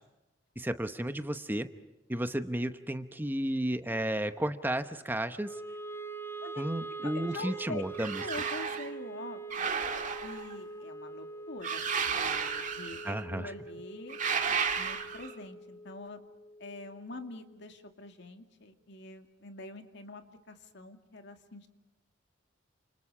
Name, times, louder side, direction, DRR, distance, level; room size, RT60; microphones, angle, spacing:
voice 1, 0.6-1.7 2.1-5.5 6.6-8.2 13.0-13.5, right 1 dB, 10° right, 9 dB, 0.9 m, -33 dB
Wind instrument woodwind instrument, 5.4-17.7, right 3 dB, 15° left, 2.2 m, -44 dB
voice 2, 7.0-7.8 8.2-9.7 10.2-11.8 12.1-14.2 14.8-16.2 16.6-21.7, left 2 dB, 65° left, 6 dB, 2.4 m, -45 dB
sound 1, 7.9-8.9 9.5-10.5 11.6-13.2 14.1-15.3, right 6 dB, 40° right, 1.8 m, -33 dB
29.5 x 28.0 x 5.0 m, 1.0 s
head